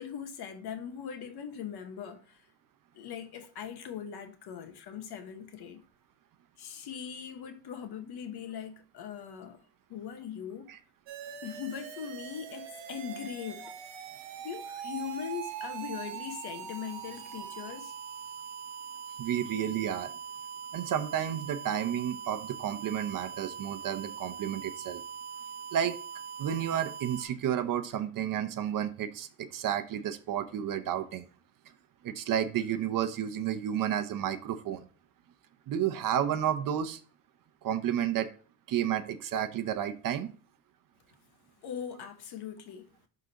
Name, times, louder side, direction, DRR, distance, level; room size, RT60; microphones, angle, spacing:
voice 1, 0.0-2.4 2.9-5.8 6.6-9.6 9.9-10.7 11.4-13.7 14.4-17.9 41.6-42.9, left 8 dB, 60° left, 1.4 m, -40 dB
sound 1, 11.1-27.3, right 8 dB, 80° right, 1.2 m, -42 dB
voice 2, 19.2-20.1 20.7-25.0 25.7-26.0 26.4-31.2 32.0-34.8 35.7-37.0 37.6-38.3 38.7-40.3, right 10 dB, 50° right, 0.8 m, -31 dB
11.5 x 3.9 x 2.9 m
cardioid pair, 125°, 43 cm